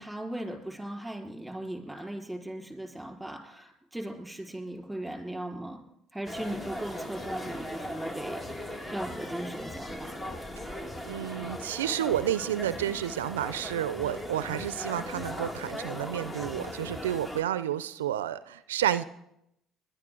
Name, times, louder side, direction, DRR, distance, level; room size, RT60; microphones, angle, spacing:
voice 1, 0.0-5.8 6.1-10.1, right 1 dB, 5° right, 1 dB, 4.3 m, -38 dB
sound 1, 6.3-17.4, left 1 dB, 20° left, 1.6 m, -38 dB
voice 2, 11.0-19.0, right 11 dB, 90° right, 15 dB, 0.4 m, -30 dB
21.0 x 11.0 x 3.8 m, 0.78 s
hypercardioid pair, 60°, 0 cm